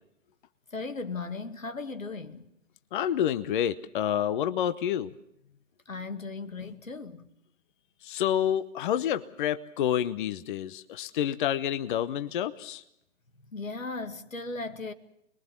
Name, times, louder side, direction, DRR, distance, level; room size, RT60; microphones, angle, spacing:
voice 1, 0.7-2.5 5.9-7.3 13.5-14.9, left 3 dB, 85° left, 2.4 m, -37 dB
voice 2, 2.9-5.1 8.0-12.8, left 10 dB, 40° left, 1.0 m, -28 dB
26.0 x 22.0 x 7.3 m
figure-of-eight pair, 130°, 39 cm